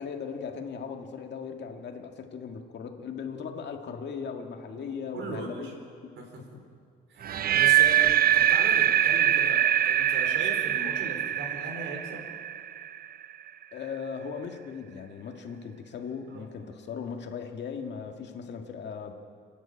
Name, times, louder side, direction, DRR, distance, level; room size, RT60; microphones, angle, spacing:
voice 1, 0.0-5.7 6.5-6.6 13.7-19.1, left 6 dB, 60° left, 3 dB, 1.9 m, -38 dB
voice 2, 5.1-5.7 6.2-6.4 7.1-12.3 16.3-16.5, right 3 dB, 80° right, 3 dB, 4.6 m, -38 dB
sound 1, 7.2-13.3, right 11 dB, 50° right, 0.6 m, -23 dB
29.5 x 10.0 x 8.8 m, 2.2 s
cardioid pair, 90°, 20 cm